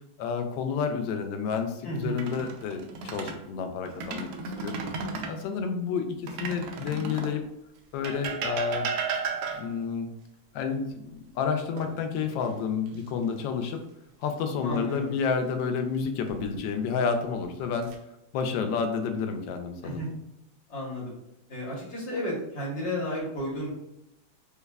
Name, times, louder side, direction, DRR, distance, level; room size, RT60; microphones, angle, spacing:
voice 1, 0.2-4.3 4.6-4.8 5.3-7.4 7.9-8.9 9.5-10.1 10.5-13.9 14.2-17.9 18.3-20.0, left 6 dB, 80° left, 6 dB, 1.2 m, -30 dB
voice 2, 1.8-2.2 14.6-15.1 19.8-20.1 20.7-21.1 21.5-23.7, equal, 40° left, -4 dB, 1.3 m, -32 dB
sound 1, 2.0-3.4 3.9-5.4 6.3-7.4 8.0-9.9 11.8-12.5 12.9-13.1 16.0-16.6 17.3-18.0, right 4 dB, 75° right, 0.9 m, -34 dB
5.2 x 2.2 x 2.3 m, 0.86 s
omnidirectional pair, 2.1 m